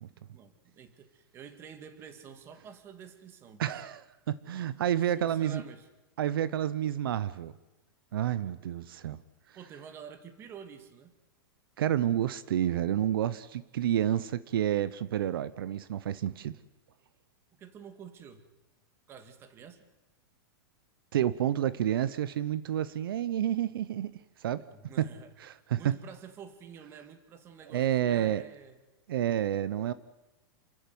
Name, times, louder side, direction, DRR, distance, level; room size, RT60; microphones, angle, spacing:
voice 1, 0.1-3.8 5.2-5.9 9.6-11.2 17.5-18.4 19.1-19.9 24.7-25.3 25.7-28.8, right 7 dB, 20° right, 10 dB, 2.1 m, -49 dB
voice 2, 3.6-4.0 4.3-5.6 6.2-7.5 8.1-9.2 11.8-16.6 21.1-24.6 25.0-25.1 25.4-25.9 27.7-28.4 29.1-29.9, right 11 dB, 75° right, 17 dB, 1.0 m, -29 dB
28.5 x 14.5 x 9.6 m, 1.1 s
supercardioid pair, 165°, 12 cm